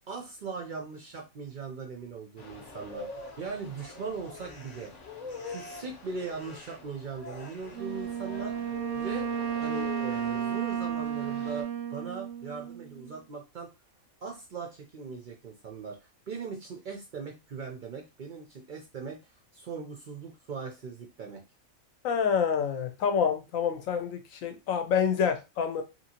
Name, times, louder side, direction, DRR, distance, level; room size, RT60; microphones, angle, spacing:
voice 1, 0.1-3.1 3.4-4.9 5.5-9.3 9.6-13.7 14.2-21.4, right 5 dB, 65° right, 0.5 m, -40 dB
sound 1, 2.4-11.6, left 4 dB, 40° left, 0.6 m, -43 dB
Wind instrument woodwind instrument, 7.7-13.2, right 9 dB, 90° right, 1.0 m, -33 dB
voice 2, 22.0-25.8, left 7 dB, 75° left, 1.0 m, -27 dB
2.9 x 2.7 x 2.8 m
omnidirectional pair, 1.4 m